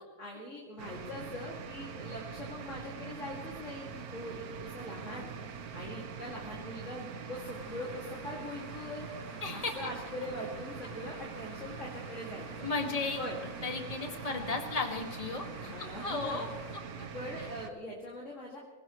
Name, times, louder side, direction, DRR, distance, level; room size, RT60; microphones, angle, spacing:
voice 1, 0.2-5.3 5.7-9.1 9.5-12.7 13.2-13.4 15.6-16.4 17.1-18.6, left 1 dB, 50° left, -3 dB, 2.8 m, -42 dB
sound 1, 0.8-17.7, right 6 dB, 70° right, 1.4 m, -43 dB
sound 2, 7.3-16.8, left 4 dB, 80° left, 1.9 m, -54 dB
voice 2, 9.4-9.7 12.6-13.2 13.6-15.7 16.0-16.5 17.0-17.1 17.4-17.5, left 3 dB, 25° left, 2 dB, 1.9 m, -34 dB
25.0 x 18.0 x 3.2 m, 1.4 s
omnidirectional pair, 1.7 m